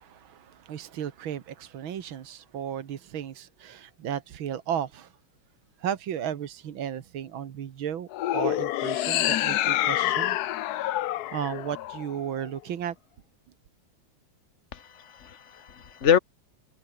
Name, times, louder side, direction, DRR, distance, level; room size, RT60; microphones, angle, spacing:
voice 1, 0.0-5.1 5.8-10.4 10.7-10.9 11.3-13.0, right 9 dB, 80° right, 2.2 m, -34 dB
sound 1, 8.1-12.5, left 14 dB, 70° left, 1.0 m, -27 dB
voice 2, 14.7-16.2, left 8 dB, 40° left, 1.6 m, -26 dB
omnidirectional pair, 2.2 m